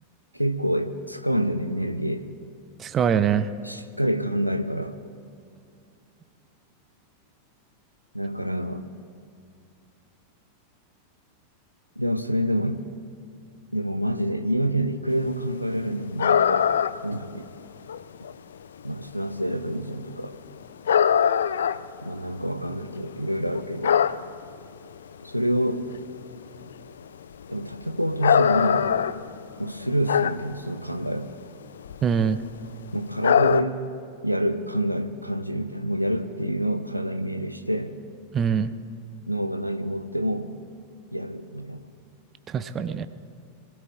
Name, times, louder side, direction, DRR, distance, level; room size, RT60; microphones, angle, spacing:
voice 1, 0.3-2.3 3.6-5.0 8.1-8.9 12.0-12.8 13.7-16.7 17.0-17.5 18.8-20.3 22.0-24.0 25.2-25.9 27.5-29.0 29.6-31.3 32.9-33.8 34.2-38.0 39.3-40.6 41.1-41.8, equal, 90° right, 10 dB, 0.6 m, -27 dB
voice 2, 2.8-3.5 32.0-32.4 38.3-38.7 42.5-43.1, right 7 dB, 25° right, 12 dB, 0.6 m, -23 dB
sound 1, 16.2-17.1 17.4-17.5 17.9-18.3 19.3-19.5 20.1-20.3 20.9-23.0 23.3-24.6 25.1-25.2 25.6-25.7 25.9-26.2 26.5-26.8 27.4-30.6 30.9-31.1 31.6-32.0 32.3-32.6 33.2-33.6, left 8 dB, 65° left, 0.4 m, -22 dB
25.0 x 16.0 x 2.4 m, 2.4 s
figure-of-eight pair, 90°, 0 cm